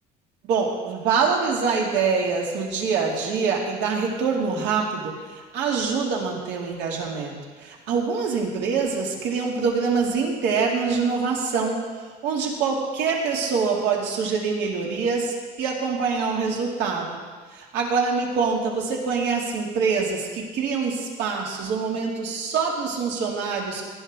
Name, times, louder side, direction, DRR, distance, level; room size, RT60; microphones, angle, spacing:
voice 1, 0.4-11.9 12.2-17.2 17.5-23.8, right 5 dB, 75° right, -1 dB, 2.8 m, -25 dB
18.5 x 12.5 x 3.9 m, 1.5 s
cardioid pair, 150°, 18 cm